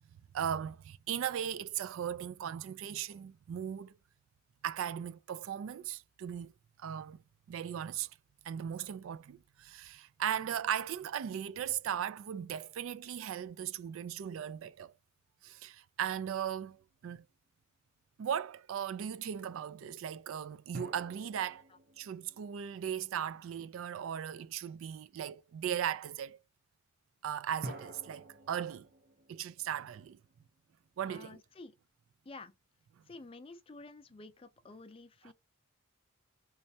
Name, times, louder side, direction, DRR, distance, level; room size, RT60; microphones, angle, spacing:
voice 1, 0.3-4.0 4.6-6.5 6.8-7.2 7.5-8.1 8.4-14.9 15.4-17.2 18.2-21.6 22.0-26.4 27.2-28.9 29.3-30.2 31.0-31.4 35.2-35.3, right 9 dB, 65° right, 0.3 m, -37 dB
sound 1, 16.8-17.1 20.7-23.6 27.6-30.9, right 2 dB, 45° right, 0.7 m, -49 dB
voice 2, 31.1-31.7 32.3-32.5 33.1-35.3, left 3 dB, 25° left, 0.4 m, -50 dB
3.2 x 3.1 x 2.7 m
head